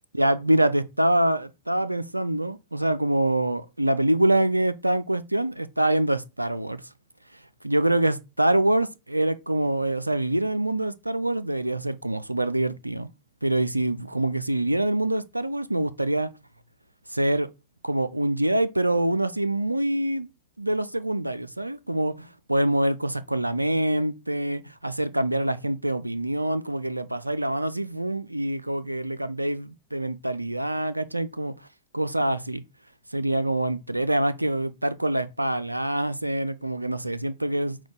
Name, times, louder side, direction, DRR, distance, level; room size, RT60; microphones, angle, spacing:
voice 1, 0.1-6.8 7.6-13.1 13.4-16.3 17.1-17.5 17.8-20.3 20.6-31.7 31.9-32.6 33.1-37.8, right 1 dB, 85° right, 0.3 m, -25 dB
5.9 x 2.2 x 3.8 m
figure-of-eight pair, 90°, 0 cm